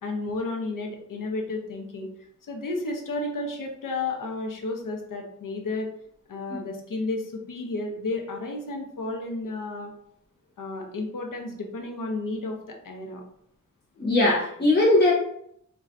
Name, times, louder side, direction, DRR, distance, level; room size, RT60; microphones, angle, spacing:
voice 1, 0.0-2.1 2.5-5.9 6.3-9.9 10.6-13.2 14.0-14.1, left 2 dB, 85° left, 2 dB, 0.7 m, -32 dB
voice 2, 14.0-15.1, left 2 dB, 30° left, -5 dB, 0.7 m, -20 dB
4.0 x 2.3 x 2.4 m, 0.72 s
wide cardioid pair, 85°, 32 cm